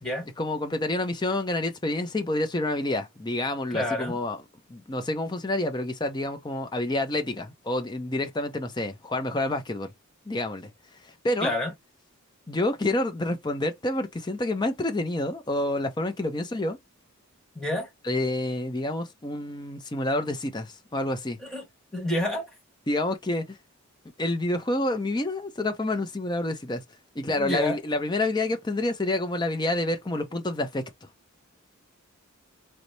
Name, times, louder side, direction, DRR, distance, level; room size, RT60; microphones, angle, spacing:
voice 1, 0.4-4.4 4.7-9.9 10.3-10.7 11.2-11.5 12.5-16.8 18.0-21.4 22.9-23.6 24.2-26.8 27.2-30.9, left 1 dB, 20° left, 0.5 m, -28 dB
voice 2, 3.7-4.2 11.4-11.7 17.5-17.9 21.4-21.6 21.9-22.5 27.3-27.8, left 1 dB, 5° left, 1.3 m, -28 dB
4.0 x 2.1 x 3.1 m
head